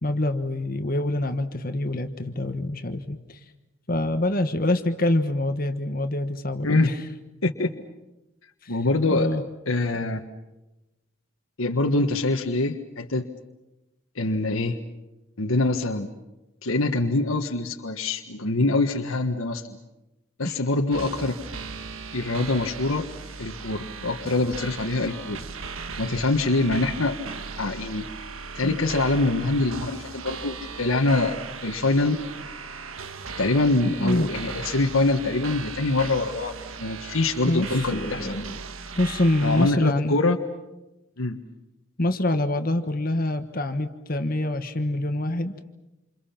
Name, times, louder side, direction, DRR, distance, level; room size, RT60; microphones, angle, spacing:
voice 1, 0.0-3.4 3.9-7.0 8.6-8.7 9.1-9.4 20.4-20.6 28.6-28.7 34.0-34.3 37.5-38.6 39.0-40.2 42.0-45.5, left 1 dB, 40° left, 7 dB, 1.4 m, -25 dB
voice 2, 8.7-9.3 9.7-10.2 11.6-13.3 14.1-14.8 15.4-16.1 16.6-19.8 20.4-21.3 22.1-23.1 23.4-25.4 26.0-27.2 27.6-28.1 28.5-31.4 31.6-32.2 33.4-38.4 39.4-40.4 41.2-41.4, left 2 dB, 80° left, 3 dB, 1.6 m, -24 dB
sound 1, 20.9-39.7, right 4 dB, 80° right, 1.5 m, -37 dB
28.0 x 28.0 x 5.9 m, 0.99 s
head